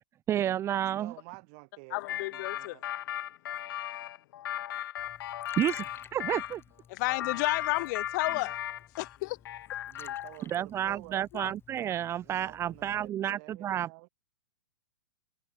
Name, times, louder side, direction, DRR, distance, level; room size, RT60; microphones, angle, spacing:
voice 1, 0.3-1.1 5.6-6.6 10.5-13.9, right 11 dB, 20° right, 0.5 m, -30 dB
voice 2, 0.8-2.8 7.2-7.5 9.9-11.3 12.2-14.1, right 35 dB, 45° right, 1.8 m, -50 dB
voice 3, 1.9-2.8 6.9-8.6 9.0-9.4 11.3-11.5, left 22 dB, 50° left, 1.1 m, -32 dB
sound 1, 2.1-6.5 7.1-9.2 9.4-10.4, left 12 dB, 65° left, 1.2 m, -36 dB
Liquid, 5.0-13.1, left 8 dB, 20° left, 4.9 m, -55 dB
hypercardioid pair, 135°, 13 cm